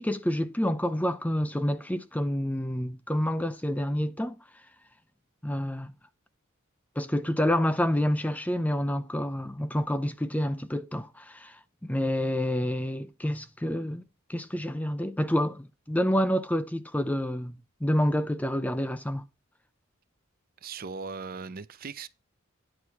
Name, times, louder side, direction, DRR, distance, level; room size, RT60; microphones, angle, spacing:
voice 1, 0.0-4.4 5.4-5.9 7.0-14.0 14.3-19.2, equal, 5° left, 0.5 m, -28 dB
voice 2, 20.6-22.1, right 5 dB, 45° right, 0.5 m, -38 dB
9.8 x 4.6 x 5.7 m
head